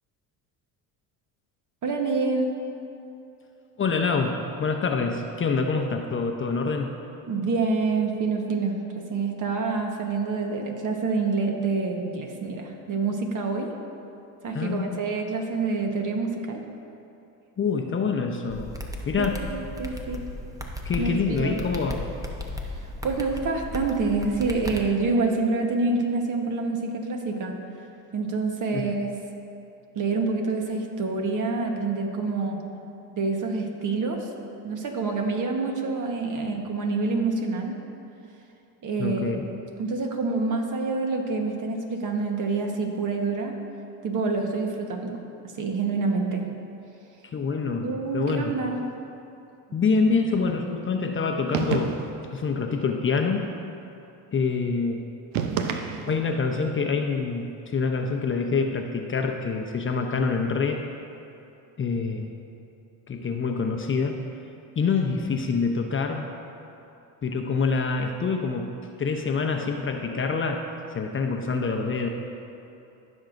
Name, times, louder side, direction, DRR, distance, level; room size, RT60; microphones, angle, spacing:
voice 1, 1.8-2.6 7.3-13.7 14.4-16.6 19.2-20.2 21.0-21.6 23.0-27.5 28.1-29.1 29.9-32.6 33.2-34.3 34.6-37.7 38.8-39.4 39.8-43.6 44.0-45.2 45.6-46.5 47.8-48.9, right 3 dB, 45° right, 2 dB, 1.2 m, -27 dB
voice 2, 3.8-6.9 14.5-15.0 17.6-18.8 19.1-19.4 20.8-22.0 28.7-28.8 39.0-39.4 47.3-48.5 49.7-52.0 52.3-53.5 54.3-55.1 56.1-60.8 61.8-62.3 63.1-64.2 64.8-66.3 67.2-70.6 70.9-72.1, left 4 dB, 30° left, 3 dB, 0.7 m, -26 dB
sound 1, 18.5-24.8, left 1 dB, 10° right, 0.8 m, -36 dB
sound 2, 51.5-52.3 55.3-56.4, right 7 dB, 90° right, 0.7 m, -28 dB
15.0 x 6.2 x 2.6 m, 2.9 s
supercardioid pair, 85°, 41 cm